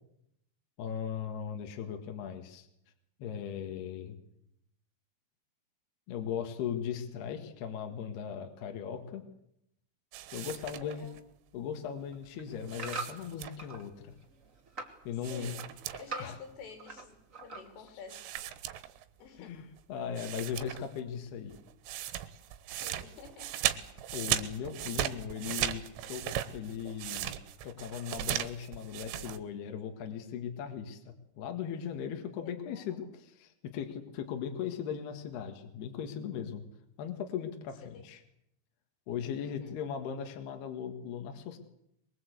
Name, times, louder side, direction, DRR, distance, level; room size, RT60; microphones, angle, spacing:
voice 1, 0.8-2.7 3.2-4.2 6.1-9.2 10.3-11.1 11.5-14.1 15.0-15.6 16.2-16.4 19.4-19.6 19.9-21.6 24.1-25.8 26.1-26.2 26.5-27.3 27.6-31.0 31.4-36.6 37.0-38.2 39.1-41.6, left 8 dB, 65° left, 5 dB, 3.4 m, -38 dB
sound 1, 10.1-11.2 12.7-13.8 15.2-16.3 16.6-16.7 18.1-19.3 19.8-19.9 20.2-21.0 21.3-29.4, right 12 dB, 85° right, 3.7 m, -37 dB
voice 2, 10.7-11.2 15.3-15.6 15.9-17.1 17.4-18.3 19.2-19.6 22.7-23.6 32.3-32.8 37.9-38.1 39.4-39.8, left 6 dB, 80° left, 5 dB, 5.9 m, -49 dB
sound 2, 12.0-13.8 14.2-15.0 15.3-17.1 17.3-17.9 18.4-18.5, right 4 dB, 25° right, 2.0 m, -42 dB
23.0 x 23.0 x 8.3 m, 0.78 s
omnidirectional pair, 5.6 m